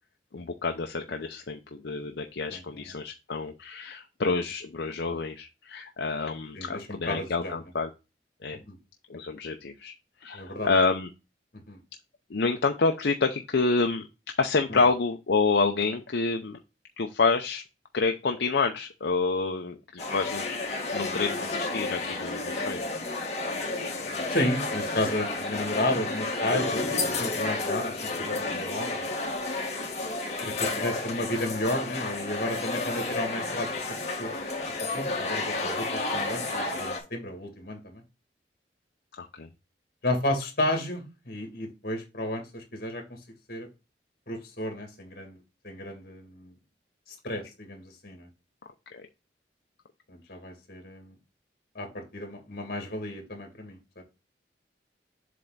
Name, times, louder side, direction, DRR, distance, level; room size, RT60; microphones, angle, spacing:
voice 1, 0.3-7.9 8.4-8.6 9.1-9.9 10.2-11.1 12.3-14.1 14.4-16.6 17.0-17.6 17.9-20.5 20.9-22.8 39.2-39.5 48.9-49.1, left 4 dB, 75° left, 4 dB, 0.6 m, -28 dB
voice 2, 6.6-7.6 8.5-8.8 10.3-10.7 11.7-11.8 14.7-14.8 24.3-26.8 27.2-29.1 30.4-33.7 34.2-34.3 34.9-38.0 40.0-43.0 43.5-43.7 44.3-45.4 45.6-46.5 47.2-48.3 50.1-51.1 51.8-54.0, left 1 dB, 55° left, 4 dB, 2.3 m, -32 dB
sound 1, 20.0-37.0, left 2 dB, 40° left, 2.1 m, -31 dB
7.6 x 3.4 x 4.0 m, 0.27 s
head